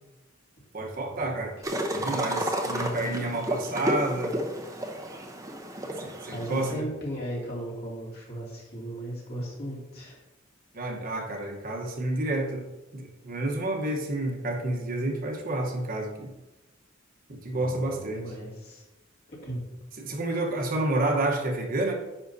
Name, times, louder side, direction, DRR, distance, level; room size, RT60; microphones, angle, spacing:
voice 1, 0.7-1.5 1.9-4.3 6.0-6.9 10.7-12.6 12.9-16.3 17.3-18.2 20.0-21.9, right 2 dB, 45° right, 1 dB, 1.1 m, -29 dB
sound 1, 1.6-6.7, equal, 15° right, 0.8 m, -31 dB
voice 2, 6.3-10.2 17.5-18.8 19.3-19.6, right 1 dB, 55° left, -4 dB, 2.5 m, -36 dB
9.9 x 5.6 x 2.7 m, 1.0 s
head